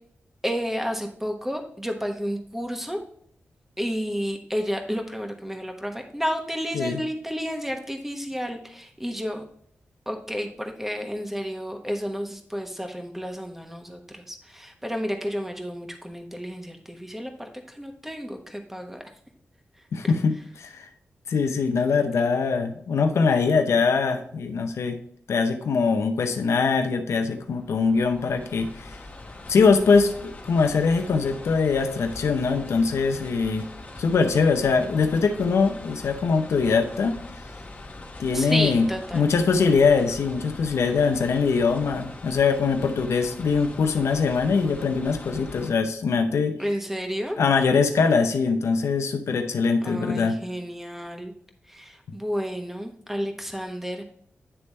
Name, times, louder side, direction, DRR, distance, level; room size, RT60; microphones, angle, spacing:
voice 1, 0.4-3.0 3.8-9.4 10.1-19.0 38.3-39.2 46.6-47.4 49.8-51.3 51.7-54.0, equal, 5° right, 4 dB, 1.1 m, -31 dB
voice 2, 19.9-20.9 21.3-25.0 25.3-28.9 29.5-33.7 34.0-37.2 38.2-38.9 39.1-46.6 47.4-50.4, left 5 dB, 85° left, 6 dB, 0.6 m, -22 dB
sound 1, 27.4-45.7, left 2 dB, 35° left, 1.2 m, -42 dB
9.9 x 3.4 x 4.2 m, 0.64 s
cardioid pair, 80°, 5 cm